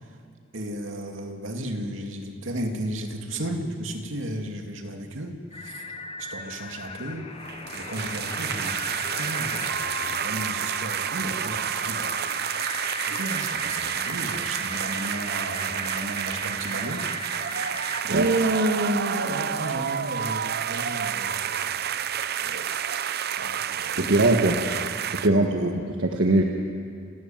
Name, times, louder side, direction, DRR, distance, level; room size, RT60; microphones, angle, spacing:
voice 1, 0.5-5.9 6.2-7.3 7.7-12.3 13.1-17.1 18.0-21.7 22.4-22.7 23.4-24.9 25.2-25.7, right 1 dB, 85° right, 3 dB, 2.5 m, -32 dB
sound 1, 5.5-18.5, left 2 dB, 30° left, 1.1 m, -37 dB
sound 2, 7.4-25.3, right 9 dB, 55° right, 0.7 m, -30 dB
voice 2, 24.0-24.6 25.1-26.4, right 2 dB, 70° right, 2 dB, 1.5 m, -21 dB
29.5 x 13.5 x 9.0 m, 2.4 s
head